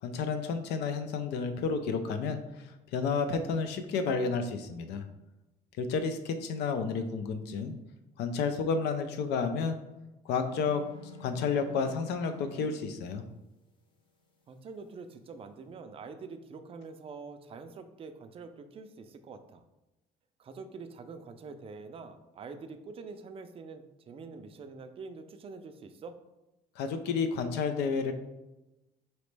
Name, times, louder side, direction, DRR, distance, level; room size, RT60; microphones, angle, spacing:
voice 1, 0.0-5.0 5.8-7.7 8.2-9.8 10.2-10.8 11.2-13.2 26.8-28.1, left 5 dB, 80° left, 8 dB, 0.5 m, -31 dB
sound 1, 10.5-12.7, left 3 dB, 30° left, 0.7 m, -48 dB
voice 2, 14.5-19.6 20.4-26.2, right 4 dB, 35° right, 8 dB, 0.4 m, -45 dB
4.2 x 3.0 x 3.2 m, 1.0 s
cardioid pair, 110°, 17 cm